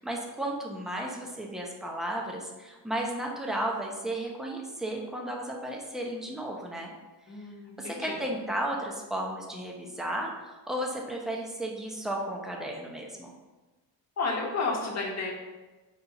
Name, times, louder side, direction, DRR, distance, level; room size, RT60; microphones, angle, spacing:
voice 1, 0.0-6.9 7.8-13.3, right 1 dB, ahead, 0 dB, 0.8 m, -34 dB
voice 2, 7.3-8.2 14.2-15.3, left 3 dB, 35° left, -1 dB, 1.3 m, -32 dB
4.3 x 4.2 x 5.2 m, 1.2 s
cardioid pair, 130°, 44 cm